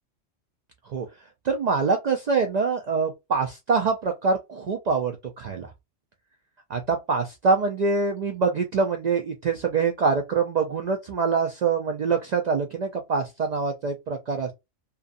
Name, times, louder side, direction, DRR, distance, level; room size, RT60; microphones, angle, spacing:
voice 1, 1.4-5.7 6.7-14.5, right 4 dB, 75° right, 0.3 m, -25 dB
2.6 x 2.4 x 2.4 m
omnidirectional pair, 1.3 m